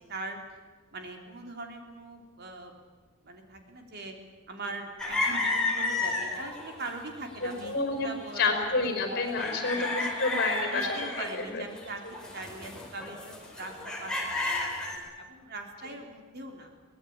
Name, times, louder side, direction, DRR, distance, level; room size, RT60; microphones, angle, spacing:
voice 1, 0.9-2.7 3.2-4.2 4.5-9.0 9.7-9.9 10.7-16.7, right 2 dB, 50° right, 3 dB, 3.3 m, -41 dB
sound 1, 5.0-6.9 7.3-7.7 8.2-9.0 9.3-15.0, left 2 dB, 5° left, 4.9 m, -32 dB
voice 2, 7.6-8.1 8.4-10.9 11.2-11.6, left 3 dB, 50° left, 5 dB, 5.3 m, -29 dB
23.0 x 19.0 x 8.7 m, 1.3 s
head